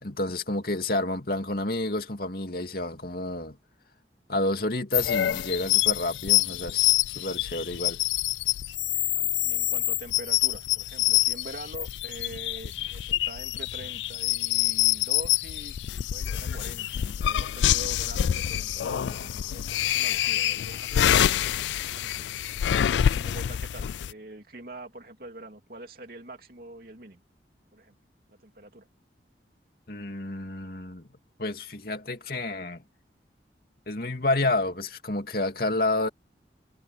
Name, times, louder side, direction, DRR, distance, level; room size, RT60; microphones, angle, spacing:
voice 1, 0.0-3.6 4.3-8.0 29.9-31.1 31.4-32.8 33.9-36.1, left 2 dB, 55° left, 2.6 m, -29 dB
sound 1, 4.9-24.1, left 12 dB, 85° left, 0.3 m, -26 dB
voice 2, 9.1-15.8 16.1-22.7 22.9-27.2 27.7-28.0 28.3-28.9, right 1 dB, 55° right, 2.9 m, -44 dB
head